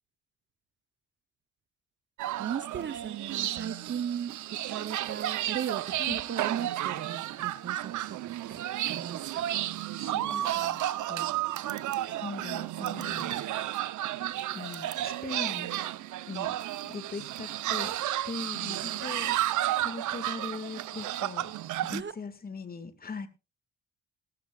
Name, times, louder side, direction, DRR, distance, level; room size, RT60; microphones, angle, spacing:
sound 1, 2.2-22.0, right 13 dB, 75° right, 0.8 m, -32 dB
voice 1, 2.4-4.3 4.7-9.5 18.1-18.3 21.9-22.1, right 8 dB, 40° right, 0.8 m, -37 dB
voice 2, 8.7-9.2 10.0-11.3 12.2-13.4 14.5-15.7 16.3-16.5 16.8-17.9 18.2-21.5 21.8-23.3, left 4 dB, 30° left, 1.8 m, -41 dB
17.5 x 13.5 x 2.4 m
cardioid pair, 90°, 30 cm